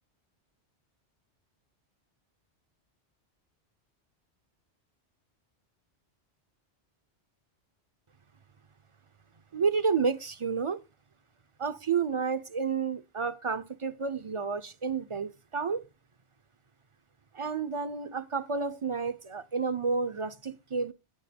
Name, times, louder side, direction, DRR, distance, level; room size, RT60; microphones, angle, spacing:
voice 1, 9.5-10.8 11.6-15.9 17.3-20.9, right 5 dB, 40° right, 0.5 m, -30 dB
9.1 x 9.0 x 5.1 m
omnidirectional pair, 1.2 m